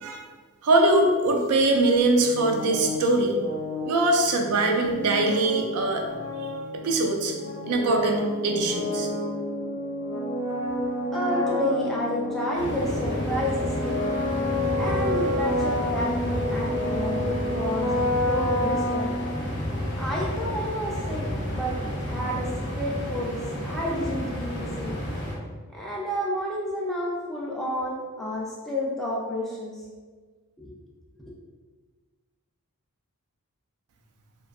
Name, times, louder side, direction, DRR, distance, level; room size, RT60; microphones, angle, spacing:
voice 1, 0.6-3.4 3.9-6.0 6.8-7.3 7.6-9.1, right 2 dB, 90° right, 2 dB, 0.4 m, -22 dB
sound 1, 2.1-19.8, left 1 dB, 85° left, 0.8 m, -30 dB
voice 2, 11.1-14.0 14.8-19.1 20.0-23.4 23.6-25.0 25.7-29.8 30.6-30.7, equal, ahead, -5 dB, 0.4 m, -30 dB
sound 2, 12.5-25.3, equal, 50° left, 0.6 m, -31 dB
2.6 x 2.3 x 2.3 m, 1.4 s
head